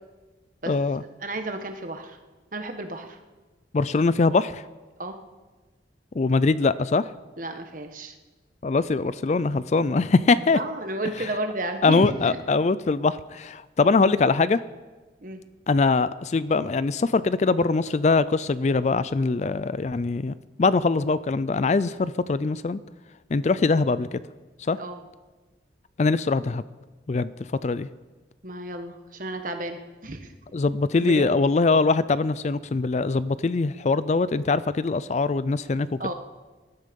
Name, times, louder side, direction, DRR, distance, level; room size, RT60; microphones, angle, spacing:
voice 1, 0.7-1.0 3.7-4.6 6.2-7.0 8.6-10.6 11.2-11.3 11.8-14.6 15.7-22.8 23.3-24.1 24.7-24.8 26.0-26.6 27.1-27.3 27.6-27.9 30.5-35.9, left 3 dB, 40° left, 16 dB, 0.4 m, -22 dB
voice 2, 1.2-2.2 2.5-3.2 5.0-5.2 7.4-8.1 10.5-12.4 15.2-15.4 24.8-25.0 28.4-30.3 30.9-31.3 36.0-36.1, right 2 dB, 45° right, 6 dB, 1.4 m, -32 dB
19.5 x 12.0 x 5.3 m, 1.2 s
head